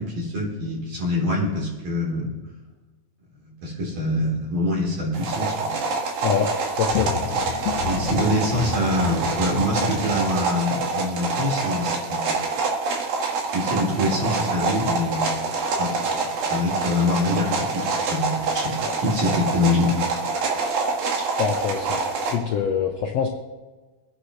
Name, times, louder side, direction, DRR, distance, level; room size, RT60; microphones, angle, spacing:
voice 1, 0.0-2.3 3.4-5.7 7.8-12.4 13.5-15.4 15.8-15.9 16.5-19.9, left 1 dB, 50° right, -5 dB, 5.0 m, -25 dB
sound 1, 5.1-22.4, right 4 dB, 80° right, 3.6 m, -26 dB
voice 2, 6.7-7.2 18.8-18.9 21.1-22.0 22.3-23.3, left 7 dB, 70° left, 2 dB, 1.6 m, -25 dB
sound 2, 6.9-10.9, left 10 dB, 90° left, 2.5 m, -32 dB
25.5 x 10.0 x 3.3 m, 1.2 s
omnidirectional pair, 4.0 m